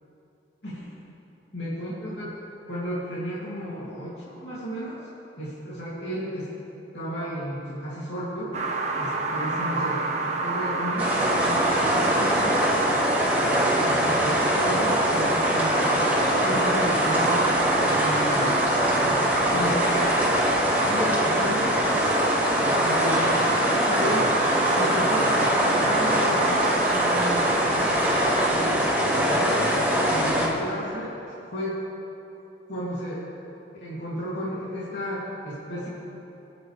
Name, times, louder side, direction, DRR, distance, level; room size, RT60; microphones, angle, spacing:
voice 1, 1.5-2.3 2.7-5.0 5.4-6.5 6.9-8.5 9.0-10.0 10.3-11.1 11.4-12.6 13.8-15.9 16.3-17.5 17.8-19.2 19.5-20.1 20.8-21.7 22.6-23.4 23.7-24.4 24.7-31.1 31.5-31.8 32.7-33.3 33.8-35.9, equal, 70° left, -9 dB, 2.8 m, -33 dB
sound 1, 8.5-28.5, right 3 dB, 40° right, 1.1 m, -28 dB
sound 2, 11.0-30.5, equal, 10° right, 2.1 m, -23 dB
26.5 x 8.9 x 3.4 m, 3.0 s
head